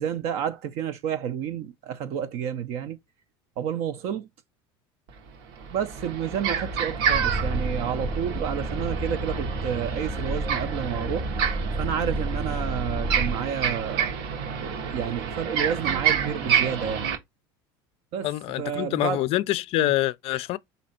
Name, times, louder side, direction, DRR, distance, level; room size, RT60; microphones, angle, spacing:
voice 1, 0.0-3.0 3.6-4.3 5.7-11.3 11.8-14.1 14.6-17.1 18.1-18.3 18.6-19.2 19.8-19.9, right 8 dB, 65° right, 0.6 m, -30 dB
sound 1, 5.1-5.2 5.6-17.2, right 7 dB, 85° right, 1.3 m, -29 dB
sound 2, 7.1-13.3, right 1 dB, 15° right, 0.7 m, -31 dB
voice 2, 18.2-20.6, left 15 dB, 55° left, 0.4 m, -25 dB
4.2 x 2.7 x 4.2 m
supercardioid pair, 110°, 12 cm